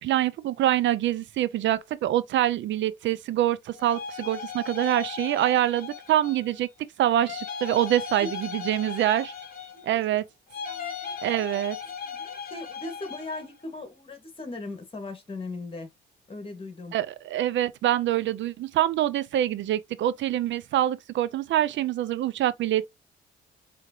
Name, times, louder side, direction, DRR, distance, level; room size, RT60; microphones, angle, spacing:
voice 1, 0.0-6.7 7.0-9.3 9.8-10.3 11.2-11.8 16.9-22.9, right 12 dB, 70° right, 0.5 m, -25 dB
sound 1, 3.7-6.6 7.2-10.0 10.5-13.5, left 6 dB, 50° left, 1.5 m, -37 dB
voice 2, 9.7-10.2 10.6-11.6 12.0-15.9 16.3-17.0, left 2 dB, 25° left, 2.1 m, -39 dB
4.7 x 3.5 x 3.0 m
cardioid pair, 90°, 20 cm